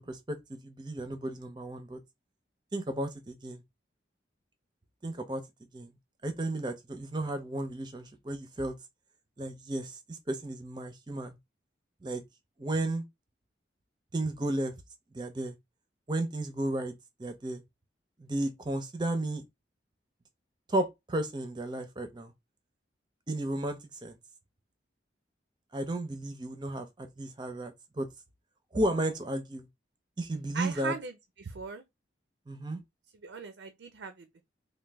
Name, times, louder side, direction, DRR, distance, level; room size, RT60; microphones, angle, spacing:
voice 1, 0.0-2.0 2.7-3.6 5.0-5.4 5.7-5.9 6.2-8.7 9.4-11.4 12.0-12.2 12.6-13.0 14.1-14.7 15.1-15.6 16.1-16.9 17.2-17.6 18.2-19.4 20.7-22.3 23.3-24.2 25.7-28.1 28.7-29.7 30.2-30.9 32.5-32.8, right 1 dB, 25° right, 0.5 m, -33 dB
voice 2, 30.5-31.8 33.2-34.4, right 5 dB, 80° right, 0.5 m, -39 dB
3.1 x 2.2 x 3.4 m
head